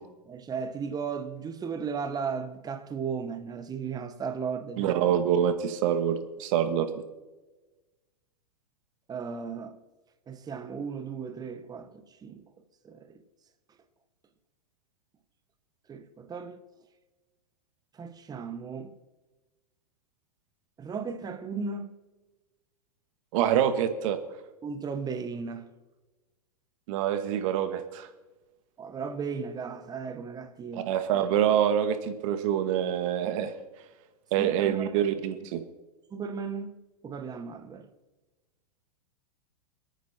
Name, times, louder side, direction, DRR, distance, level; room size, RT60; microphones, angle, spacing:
voice 1, 0.3-4.9 9.1-9.8 10.3-12.4 12.8-13.2 15.9-16.6 17.9-18.9 20.8-21.9 24.6-25.7 28.8-30.9 34.4-35.1 36.1-36.8 37.0-37.9, right 5 dB, 20° right, 1.3 m, -35 dB
voice 2, 4.8-6.9 23.3-24.2 26.9-28.1 30.7-33.5 34.3-35.6, right 9 dB, 55° right, 1.9 m, -26 dB
27.5 x 9.2 x 4.4 m
hypercardioid pair, 115°, 20 cm